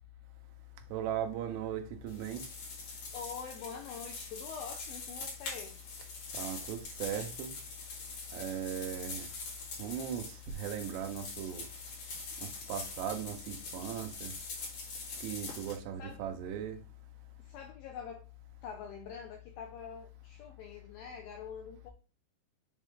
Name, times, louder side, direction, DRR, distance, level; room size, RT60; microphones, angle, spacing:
voice 1, 0.9-2.4 6.3-7.5 8.3-9.3 9.8-11.7 12.4-14.3 15.2-16.8, right 8 dB, 80° right, 3.0 m, -38 dB
sound 1, 2.1-15.8, left 4 dB, 55° left, 3.1 m, -44 dB
voice 2, 3.1-5.8 16.0-16.2 17.4-18.2 18.6-21.9, left 6 dB, 85° left, 2.1 m, -45 dB
7.3 x 3.6 x 3.7 m
omnidirectional pair, 5.0 m